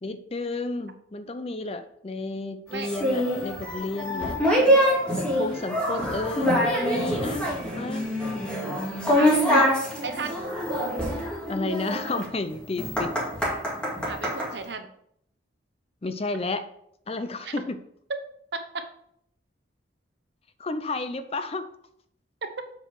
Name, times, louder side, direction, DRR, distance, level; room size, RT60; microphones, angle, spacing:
voice 1, 0.0-4.4 5.1-8.1 9.2-9.6 11.5-13.1 16.0-16.6 17.1-17.8 20.6-21.7, left 2 dB, 30° left, 10 dB, 0.5 m, -32 dB
sound 1, 2.8-14.5, equal, 5° left, 2.0 m, -25 dB
voice 2, 9.1-9.7 10.0-10.4 14.0-14.9 17.4-17.5 18.5-18.6, right 3 dB, 65° right, 8 dB, 0.9 m, -33 dB
7.8 x 4.7 x 4.7 m, 0.71 s
head